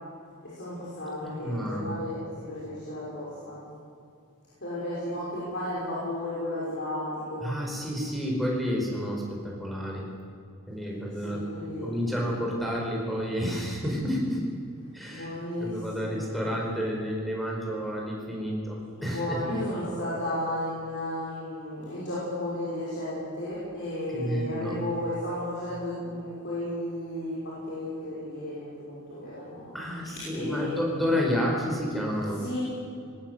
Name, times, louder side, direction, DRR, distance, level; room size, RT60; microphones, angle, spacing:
voice 1, 0.5-2.2 2.5-3.6 4.6-7.5 11.2-12.1 15.1-16.3 19.0-29.7 30.3-30.8 32.4-32.6, left 1 dB, 55° left, -8 dB, 6.2 m, -33 dB
voice 2, 1.2-1.9 7.4-10.1 10.7-11.4 11.8-14.4 14.9-15.3 15.6-19.6 24.1-24.8 29.7-32.4, equal, ahead, -2 dB, 4.7 m, -30 dB
20.0 x 17.5 x 8.0 m, 2.5 s
head